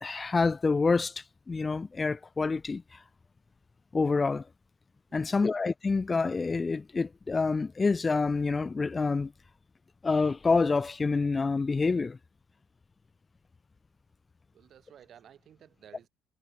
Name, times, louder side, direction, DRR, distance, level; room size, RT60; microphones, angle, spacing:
voice 1, 0.0-3.0 3.9-4.4 5.1-9.3 10.0-12.2, left 4 dB, 25° left, 0.8 m, -27 dB
voice 2, 5.1-5.5 14.5-16.1, right 9 dB, 50° right, 6.4 m, -55 dB
figure-of-eight pair, 50°, 0 cm